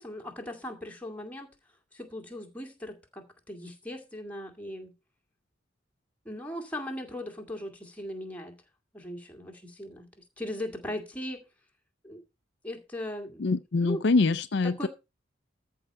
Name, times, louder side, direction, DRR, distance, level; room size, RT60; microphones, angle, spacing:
voice 1, 0.0-1.5 1.9-4.9 6.3-8.6 8.9-11.4 12.0-12.2 12.6-14.0 14.6-14.9, left 1 dB, 5° left, 2.0 m, -39 dB
voice 2, 13.4-14.9, left 3 dB, 55° left, 0.5 m, -24 dB
13.5 x 4.6 x 6.3 m
head